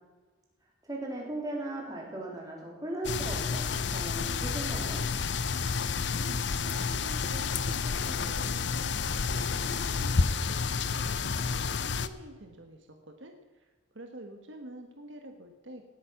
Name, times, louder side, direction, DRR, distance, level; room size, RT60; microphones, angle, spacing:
voice 1, 0.8-5.0, right 2 dB, 20° right, -2 dB, 3.6 m, -37 dB
sound 1, 3.0-12.1, left 5 dB, 60° left, 0.7 m, -30 dB
voice 2, 6.1-15.9, right 1 dB, 70° right, 5 dB, 1.4 m, -48 dB
18.5 x 8.6 x 5.9 m, 1.3 s
head